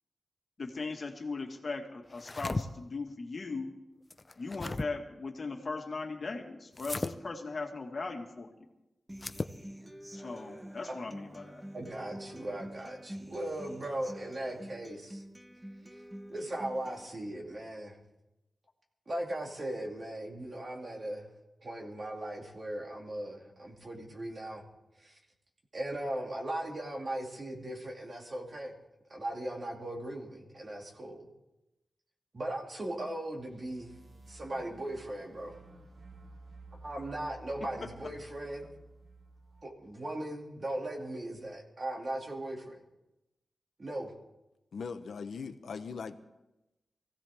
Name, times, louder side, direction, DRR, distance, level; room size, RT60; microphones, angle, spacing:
voice 1, 0.6-3.7 4.4-8.5 10.1-11.6 37.8-37.9, left 3 dB, 45° left, 3 dB, 1.8 m, -38 dB
sound 1, 2.1-2.6 4.1-4.9 6.8-7.1 9.1-9.6, left 2 dB, 25° left, 0.5 m, -35 dB
Human voice / Acoustic guitar, 9.1-17.1, equal, 10° right, 0.9 m, -47 dB
voice 2, 11.7-15.2 16.3-18.0 19.1-21.3 21.6-24.6 25.0-25.2 25.7-28.7 29.1-31.3 32.3-33.9 34.3-35.5 36.8-38.7 39.6-42.8 43.8-44.1, right 1 dB, 35° right, 0 dB, 2.5 m, -38 dB
sound 2, 33.4-39.6, right 3 dB, 65° right, 2.6 m, -53 dB
voice 3, 44.7-46.2, left 5 dB, 85° left, 9 dB, 0.9 m, -40 dB
23.5 x 16.0 x 3.6 m, 0.96 s
wide cardioid pair, 165°, 0 cm